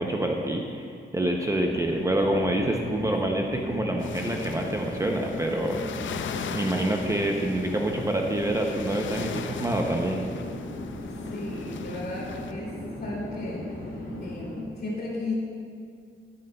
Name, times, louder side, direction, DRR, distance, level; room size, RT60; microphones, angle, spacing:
voice 1, 0.0-6.1 6.5-10.2, right 1 dB, 15° right, 1 dB, 0.5 m, -27 dB
Chatter / Fixed-wing aircraft airplane, 1.3-14.7, left 1 dB, 90° left, 1.7 m, -37 dB
sound 1, 4.0-12.5, left 7 dB, 70° left, 0.5 m, -39 dB
voice 2, 11.2-15.3, left 2 dB, 50° left, -4 dB, 2.5 m, -36 dB
18.0 x 7.7 x 2.2 m, 2.3 s
wide cardioid pair, 145°, 20 cm